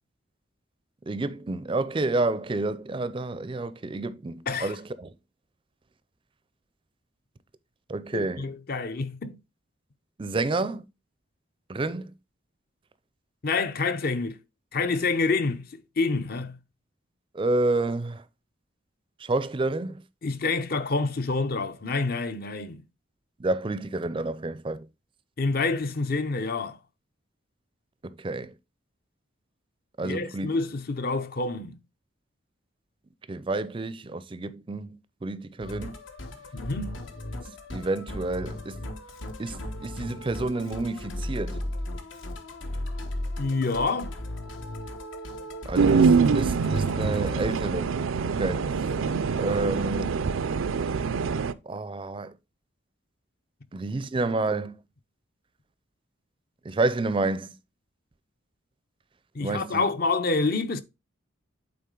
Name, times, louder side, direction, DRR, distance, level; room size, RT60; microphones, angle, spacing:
voice 1, 1.1-5.1 7.9-8.5 10.2-10.9 11.7-12.1 17.3-18.2 19.2-20.0 23.4-24.9 28.0-28.5 30.0-30.5 33.3-36.0 37.4-38.8 39.4-41.6 45.6-48.0 48.3-48.8 49.4-50.2 51.7-52.3 53.7-54.7 56.6-57.6 59.4-59.9, right 2 dB, 25° right, 0.4 m, -29 dB
voice 2, 8.1-9.4 13.4-14.4 14.7-15.6 16.0-16.6 20.2-22.8 25.4-26.8 30.0-31.8 36.5-36.9 43.4-44.2 59.3-60.8, left 3 dB, 50° left, 0.6 m, -27 dB
Musical instrument, 35.6-47.5, left 1 dB, 75° left, 1.1 m, -36 dB
sound 1, 45.7-51.5, right 5 dB, 90° right, 0.4 m, -24 dB
8.5 x 4.0 x 3.8 m
head